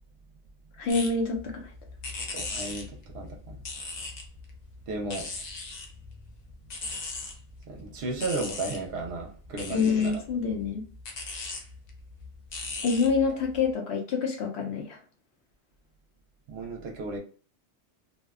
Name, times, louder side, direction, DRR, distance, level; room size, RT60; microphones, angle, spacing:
voice 1, 0.8-1.7 9.7-10.8 12.8-15.0, left 5 dB, 70° left, 0.8 m, -27 dB
sound 1, 0.9-13.7, left 3 dB, 55° left, 0.5 m, -40 dB
voice 2, 2.3-3.6 4.9-5.3 7.7-10.1 16.5-17.2, right 2 dB, 65° right, 0.8 m, -34 dB
2.5 x 2.1 x 2.3 m
omnidirectional pair, 1.2 m